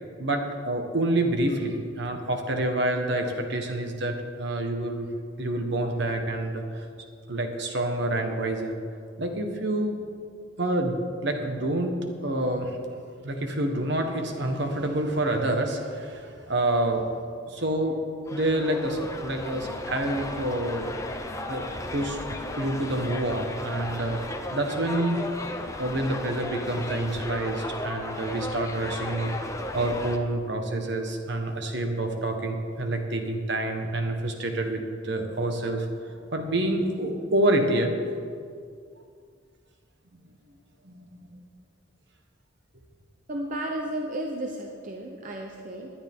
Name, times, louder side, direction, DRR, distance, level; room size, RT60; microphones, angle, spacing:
voice 1, 0.2-5.1 5.4-6.9 7.3-8.8 9.2-10.0 10.6-11.9 12.2-12.8 13.2-17.1 17.5-18.0 18.3-20.9 21.5-21.6 21.9-22.2 22.6-25.2 25.8-29.3 29.7-37.9 40.8-41.4, right 1 dB, 60° right, 4 dB, 1.5 m, -27 dB
sound 1, 18.3-30.2, left 1 dB, 15° left, 0.8 m, -35 dB
voice 2, 43.3-45.9, right 1 dB, 45° right, 1 dB, 1.0 m, -33 dB
20.0 x 10.5 x 3.8 m, 2.2 s
head